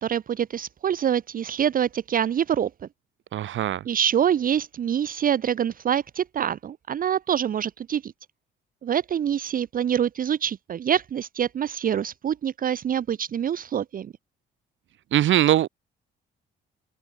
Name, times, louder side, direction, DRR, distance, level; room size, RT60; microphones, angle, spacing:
voice 1, 0.0-2.7 3.8-8.1 8.8-14.1, right 9 dB, 45° right, 0.6 m, -25 dB
voice 2, 3.3-3.8 15.1-15.7, right 12 dB, 75° right, 2.1 m, -21 dB
open air
cardioid pair, 90°, 20 cm